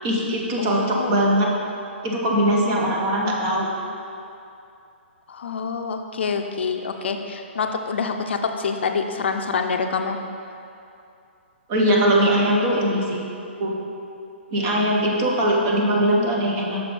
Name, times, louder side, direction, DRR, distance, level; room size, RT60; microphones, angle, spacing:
voice 1, 0.0-1.5 2.0-3.7 11.7-13.2 13.6-13.7 14.5-16.8, equal, 20° right, -2 dB, 0.5 m, -21 dB
voice 2, 0.6-1.3 5.3-10.2, left 5 dB, 65° left, 5 dB, 0.4 m, -26 dB
6.0 x 3.5 x 4.9 m, 2.6 s
hypercardioid pair, 175°, 7 cm